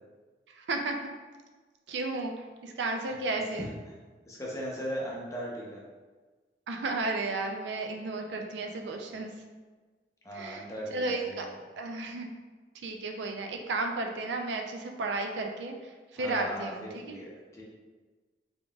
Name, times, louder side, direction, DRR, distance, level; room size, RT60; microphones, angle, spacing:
voice 1, 0.6-1.0 1.9-2.3 2.6-3.7 6.7-9.3 10.3-11.5 11.8-12.3 12.8-17.3, right 3 dB, 80° right, 3 dB, 0.4 m, -33 dB
voice 2, 4.3-5.8 8.9-9.2 10.2-11.5 16.2-17.6, equal, 15° left, -4 dB, 0.6 m, -38 dB
3.8 x 3.6 x 2.3 m, 1.3 s
head